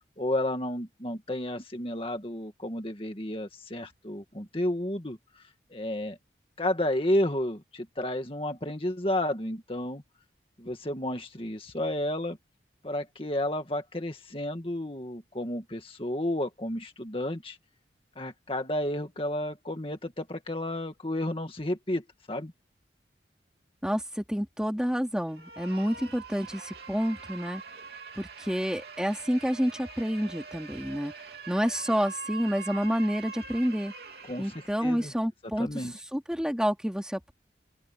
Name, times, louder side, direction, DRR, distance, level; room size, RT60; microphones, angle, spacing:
voice 1, 0.2-6.2 6.6-10.0 10.6-12.4 12.8-17.6 18.2-22.5 34.3-35.1 35.6-35.9, left 1 dB, 30° left, 2.0 m, -32 dB
voice 2, 23.8-27.6 28.2-31.1 31.5-33.9 34.4-37.3, equal, 5° right, 2.7 m, -29 dB
sound 1, 25.3-35.1, right 5 dB, 60° right, 3.5 m, -44 dB
open air
head